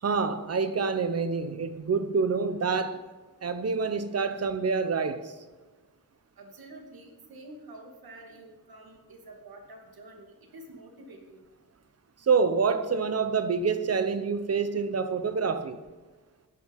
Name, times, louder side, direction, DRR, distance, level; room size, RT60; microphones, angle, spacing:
voice 1, 0.0-3.0 3.4-5.3 12.2-15.8, right 5 dB, 45° right, 0.9 m, -27 dB
voice 2, 6.4-11.4, right 2 dB, 80° right, 2.7 m, -48 dB
13.5 x 9.5 x 5.5 m
wide cardioid pair, 175°, 36 cm